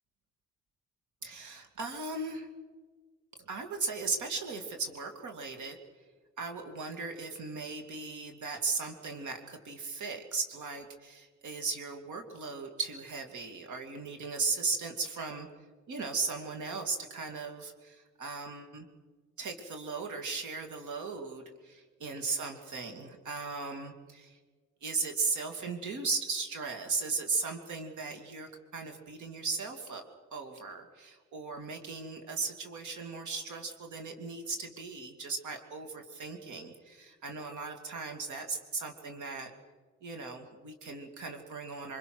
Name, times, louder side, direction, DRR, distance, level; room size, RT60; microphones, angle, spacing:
voice 1, 1.2-2.5 3.4-5.8 6.4-15.5 15.9-18.9 19.4-24.4 24.8-30.0 30.3-39.5 40.0-42.0, right 4 dB, 75° right, 5 dB, 2.6 m, -37 dB
24.5 x 24.0 x 6.2 m, 1.4 s
cardioid pair, 90°, 30 cm